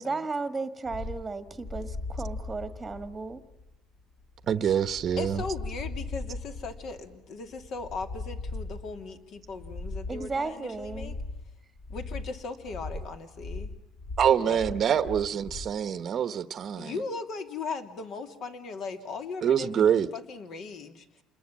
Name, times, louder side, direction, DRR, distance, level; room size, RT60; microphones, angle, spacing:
voice 1, 0.0-3.4 10.1-11.1, right 3 dB, 15° right, 1.7 m, -34 dB
sound 1, 0.9-15.8, left 3 dB, 25° left, 1.3 m, -39 dB
voice 2, 4.5-5.4 14.2-16.9 19.4-20.1, right 8 dB, 40° right, 1.1 m, -25 dB
voice 3, 5.2-11.1 11.9-13.7 14.4-14.7 16.7-21.2, left 4 dB, 50° left, 2.8 m, -38 dB
29.0 x 21.5 x 7.4 m
cardioid pair, 145°, 0 cm